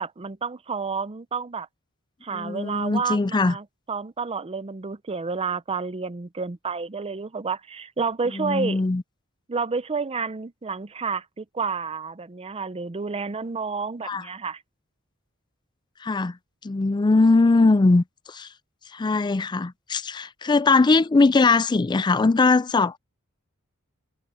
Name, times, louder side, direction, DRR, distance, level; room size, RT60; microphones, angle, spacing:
voice 1, 0.0-1.7 2.2-8.8 9.5-14.6, right 5 dB, 25° right, 0.6 m, -30 dB
voice 2, 2.3-3.6 8.3-9.0 14.0-14.3 16.0-16.4 16.6-18.5 18.9-23.0, left 3 dB, 20° left, 0.4 m, -20 dB
head